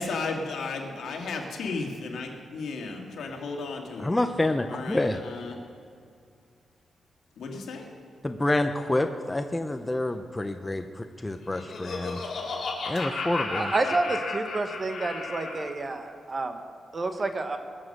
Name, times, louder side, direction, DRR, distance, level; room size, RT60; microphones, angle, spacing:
voice 1, 0.0-4.2 4.7-5.6 7.4-7.9, left 3 dB, 85° left, 2 dB, 1.9 m, -34 dB
voice 2, 4.0-5.2 8.2-12.2 12.9-13.7, left 1 dB, 15° left, 6 dB, 0.6 m, -28 dB
Laughter, 11.2-15.7, left 3 dB, 60° left, 2.6 m, -34 dB
voice 3, 13.5-16.6 16.9-17.6, right 2 dB, 30° right, 7 dB, 1.2 m, -29 dB
21.0 x 7.3 x 6.5 m, 2.4 s
wide cardioid pair, 125°, 0 cm